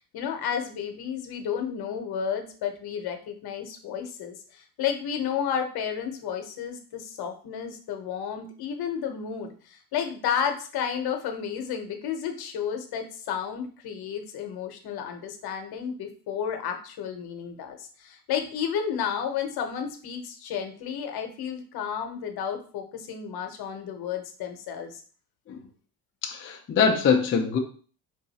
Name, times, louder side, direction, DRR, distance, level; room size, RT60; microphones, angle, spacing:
voice 1, 0.1-25.0, left 8 dB, 60° left, 5 dB, 1.0 m, -32 dB
voice 2, 26.2-27.6, left 6 dB, 30° left, 1 dB, 0.5 m, -23 dB
4.7 x 2.6 x 4.1 m, 0.42 s
cardioid pair, 135°, 42 cm